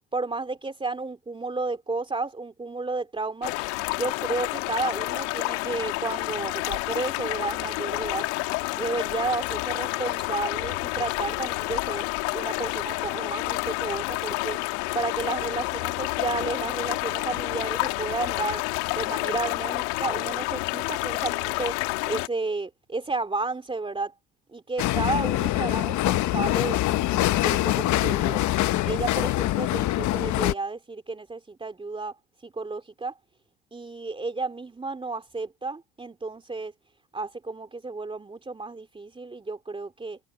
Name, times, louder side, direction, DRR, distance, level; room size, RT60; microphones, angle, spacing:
voice 1, 0.1-3.6 3.9-8.3 8.8-12.0 12.3-14.6 14.9-18.7 19.0-24.1 24.5-28.4 28.8-32.2 32.4-33.2 33.7-36.7 37.1-40.2, right 3 dB, 15° right, 2.9 m, -32 dB
sound 1, 3.4-22.3, left 24 dB, 85° left, 2.0 m, -29 dB
sound 2, 24.8-30.5, left 16 dB, 55° left, 0.8 m, -24 dB
supercardioid pair, 100°, 35 cm